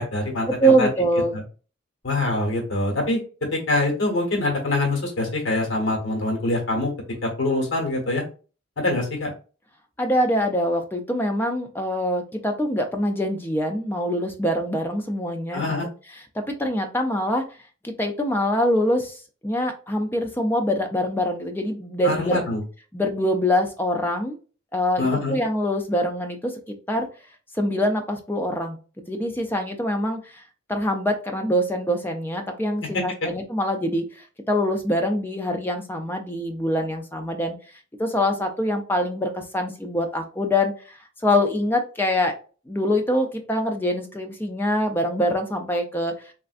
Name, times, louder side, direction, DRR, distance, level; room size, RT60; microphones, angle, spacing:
voice 1, 0.0-0.9 1.3-1.4 2.0-3.2 3.5-6.9 7.2-8.2 8.8-9.3 15.5-15.9 22.0-22.6 25.0-25.3, left 2 dB, 65° left, 1 dB, 1.2 m, -24 dB
voice 2, 0.6-1.4 10.0-15.7 16.3-17.4 17.8-22.4 22.9-24.4 24.7-27.1 27.5-28.8 29.1-30.4 30.7-37.6 38.0-41.0 41.2-42.3 42.7-46.3, equal, 10° left, 4 dB, 0.4 m, -24 dB
3.2 x 2.5 x 2.4 m, 0.37 s
head